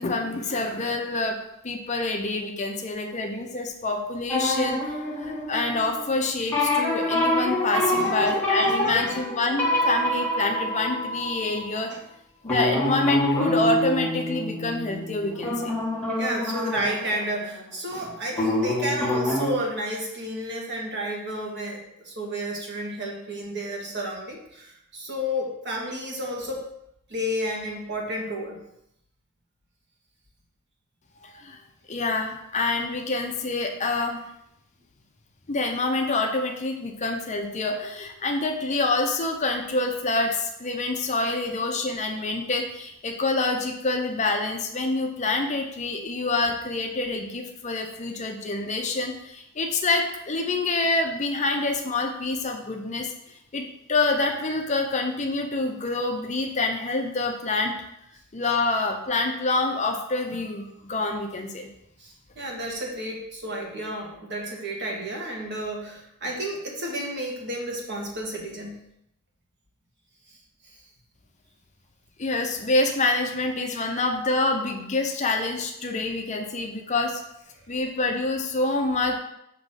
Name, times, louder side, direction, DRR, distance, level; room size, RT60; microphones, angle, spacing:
voice 1, 0.0-11.9 12.4-15.8 31.2-31.6 31.9-34.3 35.5-53.1 53.5-57.7 58.3-61.7 72.2-77.2 77.7-79.2, left 2 dB, 35° left, 3 dB, 0.6 m, -27 dB
sound 1, 4.3-6.2 6.5-11.7 12.5-17.9 18.3-19.5, left 1 dB, 10° left, 1.2 m, -26 dB
voice 2, 7.9-8.3 8.6-9.2 11.9-12.0 16.2-26.6 27.1-28.6 62.0-68.8, equal, 55° right, -1 dB, 1.5 m, -32 dB
6.6 x 3.0 x 5.6 m, 0.79 s
head